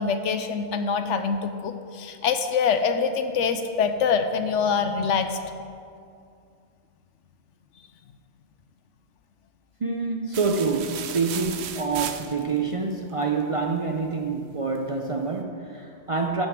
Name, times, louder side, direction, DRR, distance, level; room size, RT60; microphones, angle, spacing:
voice 1, 0.0-5.4, left 6 dB, 75° left, 8 dB, 0.9 m, -25 dB
voice 2, 9.8-16.5, right 4 dB, 50° right, 2 dB, 0.4 m, -27 dB
sound 1, 10.3-12.7, right 8 dB, 65° right, 0.8 m, -35 dB
11.5 x 9.3 x 3.6 m, 2.4 s
omnidirectional pair, 1.3 m